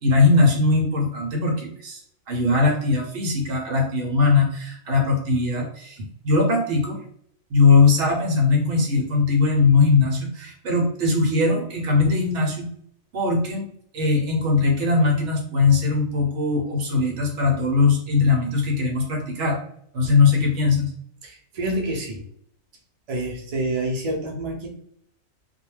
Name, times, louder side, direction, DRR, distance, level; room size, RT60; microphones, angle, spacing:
voice 1, 0.0-2.0 2.3-7.0 7.5-12.7 13.1-13.7 13.9-19.6 19.9-20.9, left 4 dB, 65° right, 1 dB, 0.9 m, -20 dB
voice 2, 21.2-22.2 23.1-24.7, right 1 dB, 45° right, -2 dB, 0.5 m, -27 dB
2.3 x 2.2 x 3.1 m, 0.66 s
omnidirectional pair, 1.4 m